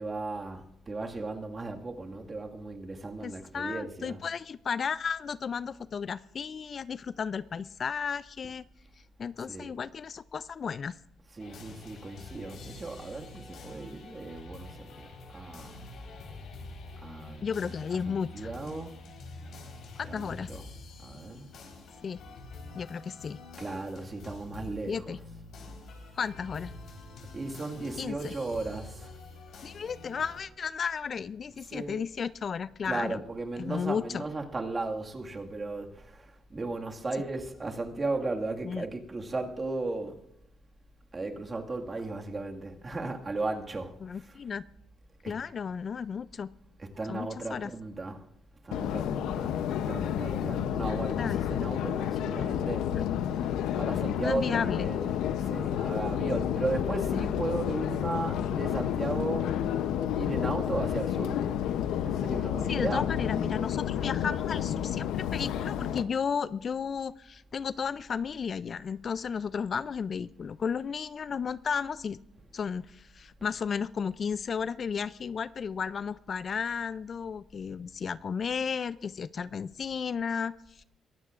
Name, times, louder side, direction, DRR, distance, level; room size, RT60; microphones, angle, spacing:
voice 1, 0.0-4.2 9.4-9.7 11.3-15.7 17.0-19.2 20.0-20.7 21.0-21.5 23.6-25.2 27.3-29.2 31.6-32.0 32.8-40.2 41.1-44.4 45.2-45.3 46.8-48.3 48.6-49.6 49.8-53.0 53.2-53.5 53.8-59.8 60.2-61.5 62.0-63.1 73.4-73.6, right 3 dB, 30° right, 1.9 m, -36 dB
voice 2, 3.2-8.7 9.2-10.9 17.4-18.5 20.0-20.5 22.0-22.2 22.7-23.4 24.9-25.2 26.2-26.7 28.0-28.3 29.6-33.2 33.6-34.2 37.1-37.2 38.6-38.9 44.0-44.6 45.3-46.5 47.1-47.7 51.2-51.4 52.9-53.1 54.2-54.9 62.7-72.2 72.5-80.8, left 6 dB, 45° left, 0.4 m, -34 dB
sound 1, 11.4-30.4, left 3 dB, 75° left, 3.9 m, -46 dB
Subway metro underground, 48.7-66.0, left 10 dB, 90° left, 0.7 m, -30 dB
22.0 x 16.0 x 2.5 m
cardioid pair, 90°, 0 cm